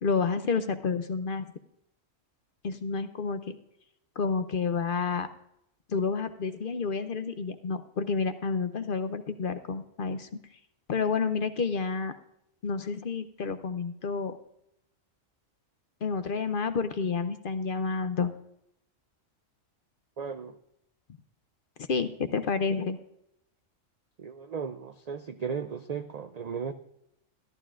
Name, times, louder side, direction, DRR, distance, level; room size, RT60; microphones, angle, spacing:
voice 1, 0.0-1.5 2.6-3.6 4.2-5.3 5.9-10.3 10.9-12.1 12.6-14.4 16.0-18.3 21.9-23.0, left 5 dB, 55° left, 10 dB, 0.7 m, -29 dB
voice 2, 20.2-20.6 24.2-26.7, right 6 dB, 80° right, 9 dB, 0.3 m, -36 dB
13.5 x 12.5 x 2.5 m, 0.79 s
omnidirectional pair, 1.3 m